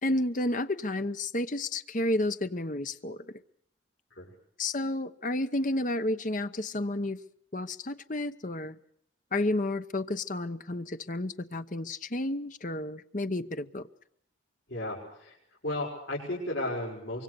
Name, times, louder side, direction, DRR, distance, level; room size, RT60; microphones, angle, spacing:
voice 1, 0.0-3.4 4.6-7.2 7.5-8.8 9.3-13.9, left 1 dB, 40° left, 1.0 m, -31 dB
voice 2, 14.7-15.4 15.6-17.2, left 1 dB, 75° left, 6.2 m, -34 dB
25.0 x 23.5 x 6.9 m
head